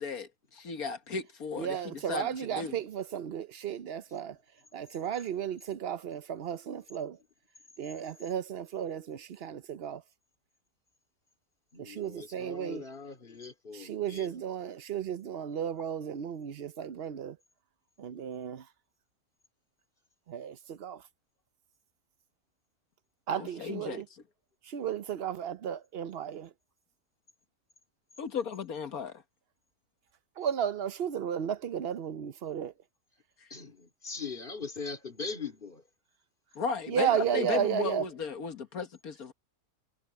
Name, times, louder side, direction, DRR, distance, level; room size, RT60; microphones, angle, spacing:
voice 1, 0.0-2.7 23.3-24.0 28.2-29.2 36.5-39.3, left 5 dB, 65° left, 1.8 m, -35 dB
voice 2, 1.6-4.4 4.7-7.2 7.8-10.0 11.8-12.8 13.7-17.4 18.0-18.7 20.3-21.0 23.3-24.1 24.6-26.5 30.4-32.7 36.9-38.0, right 9 dB, 55° right, 0.7 m, -34 dB
voice 3, 11.7-14.4 33.5-35.8, left 4 dB, 30° left, 3.3 m, -41 dB
omnidirectional pair, 1.7 m